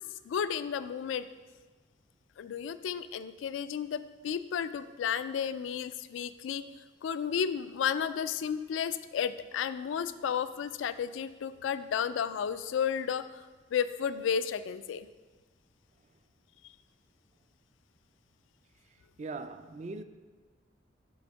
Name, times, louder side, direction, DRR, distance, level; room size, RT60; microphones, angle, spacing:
voice 1, 0.3-1.2 2.4-6.6 7.0-13.4 13.7-15.1, left 7 dB, 90° left, 0.3 m, -32 dB
voice 2, 18.9-20.0, right 3 dB, 40° right, 0.3 m, -41 dB
7.7 x 3.5 x 5.1 m
head